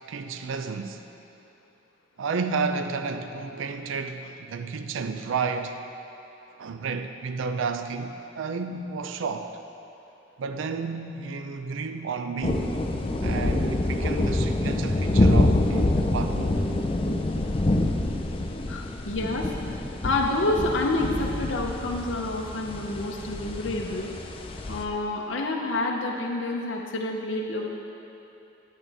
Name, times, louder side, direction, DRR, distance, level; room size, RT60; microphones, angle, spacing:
voice 1, 0.1-1.0 2.2-5.8 6.6-9.6 10.4-12.7 13.2-16.6, right 4 dB, 75° right, 8 dB, 0.4 m, -31 dB
sound 1, 12.4-24.8, left 1 dB, 30° left, 0.5 m, -26 dB
voice 2, 18.7-24.1 24.7-27.7, left 2 dB, 70° left, -1 dB, 0.7 m, -28 dB
11.0 x 8.3 x 3.4 m, 2.9 s
head